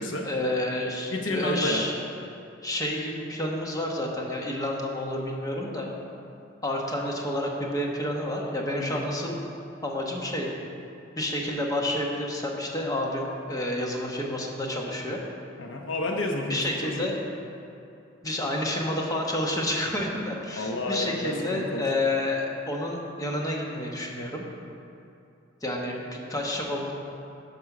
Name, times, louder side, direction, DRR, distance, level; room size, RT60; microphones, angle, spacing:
voice 1, 0.2-1.9 2.6-5.9 6.6-9.4 9.8-10.5 11.2-15.2 16.5-17.2 18.2-24.4 25.6-26.0 26.3-26.9, left 1 dB, 20° left, -1 dB, 1.1 m, -29 dB
voice 2, 1.1-1.8 8.8-9.0 15.6-17.1 20.6-21.9, left 2 dB, 75° left, 2 dB, 1.0 m, -30 dB
11.5 x 5.4 x 6.0 m, 2.7 s
head